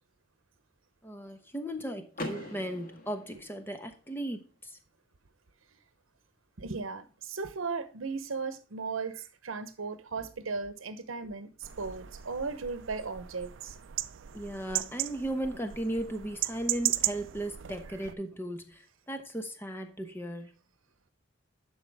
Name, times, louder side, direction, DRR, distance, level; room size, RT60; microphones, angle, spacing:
voice 1, 1.0-4.7 14.3-18.8 19.1-20.5, right 1 dB, 10° left, 1.0 m, -36 dB
Car / Door, 2.1-4.1, left 1 dB, 45° left, 1.6 m, -41 dB
voice 2, 6.6-13.8, right 4 dB, 90° right, 0.9 m, -36 dB
sound 1, 11.6-18.1, right 14 dB, 70° right, 0.5 m, -36 dB
11.0 x 5.5 x 3.4 m
head